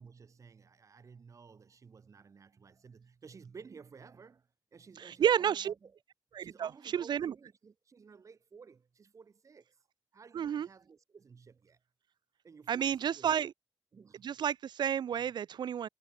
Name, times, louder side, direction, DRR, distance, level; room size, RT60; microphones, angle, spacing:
voice 1, 0.0-6.0 6.4-9.8 10.1-11.8 12.4-13.5 13.9-14.3 15.1-15.3, right 5 dB, 45° right, 6.6 m, -55 dB
voice 2, 5.1-5.7 6.4-7.3 10.3-10.7 12.7-13.5 14.2-15.9, right 9 dB, 80° right, 0.9 m, -31 dB
wide cardioid pair, 150°, 7 cm